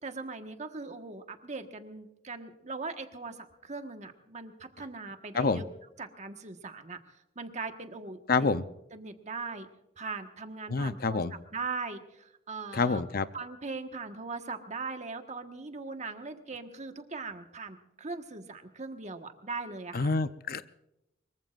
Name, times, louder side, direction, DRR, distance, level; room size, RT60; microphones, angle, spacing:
voice 1, 0.0-5.7 6.0-7.0 7.3-8.5 8.9-9.7 10.0-11.2 11.5-13.0 13.3-20.1, right 4 dB, 40° right, 6 dB, 1.4 m, -40 dB
voice 2, 8.3-8.6 10.7-11.3 12.7-13.3 19.9-20.6, left 4 dB, 55° left, 13 dB, 0.7 m, -27 dB
24.0 x 22.5 x 2.5 m, 0.88 s
head